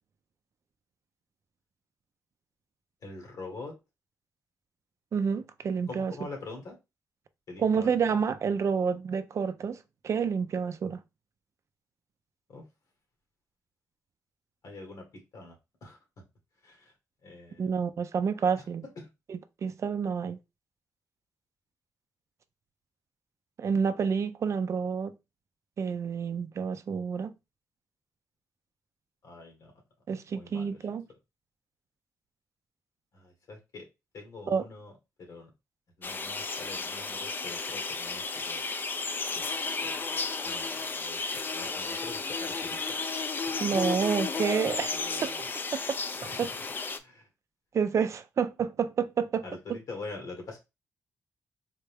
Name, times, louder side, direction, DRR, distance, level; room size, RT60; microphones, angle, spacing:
voice 1, 3.0-3.7 5.9-6.8 7.5-8.2 12.5-12.6 14.6-15.5 15.8-16.0 16.6-16.9 17.2-17.8 18.6-18.7 19.0-19.1 29.2-29.7 30.3-30.8 33.1-33.9 34.1-34.9 35.2-35.5 36.0-38.6 39.3-39.5 39.8-41.2 41.5-42.8 43.4-43.8 44.9-45.5 46.2-46.5 46.9-47.3 49.4-50.6, left 3 dB, 70° left, 1.5 m, -45 dB
voice 2, 5.1-6.1 7.6-9.8 10.0-11.0 17.6-18.8 19.3-20.4 23.6-25.1 25.8-27.3 30.1-31.1 34.5-34.6 43.6-45.0 45.2-45.3 46.4-46.5 47.7-49.4, right 6 dB, 55° right, 0.4 m, -29 dB
sound 1, 36.0-47.0, left 4 dB, 35° left, 0.4 m, -33 dB
3.9 x 2.2 x 3.3 m
cardioid pair, 90°, 6 cm